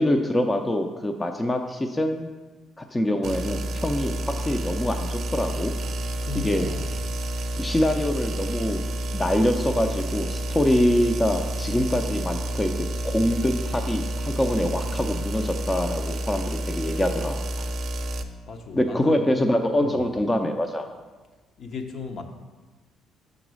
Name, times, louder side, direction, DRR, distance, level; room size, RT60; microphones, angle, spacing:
voice 1, 0.0-2.3 2.8-5.7 6.4-6.7 7.6-8.8 9.1-12.7 13.0-17.4 18.7-20.9, left 1 dB, 15° left, 5 dB, 0.5 m, -24 dB
sound 1, 3.2-18.2, right 1 dB, 65° right, 0.5 m, -29 dB
voice 2, 6.2-6.9 18.5-19.3 19.8-20.0 21.6-22.2, left 5 dB, 60° left, 4 dB, 0.8 m, -35 dB
6.0 x 4.0 x 6.2 m, 1.3 s
cardioid pair, 90°, 0 cm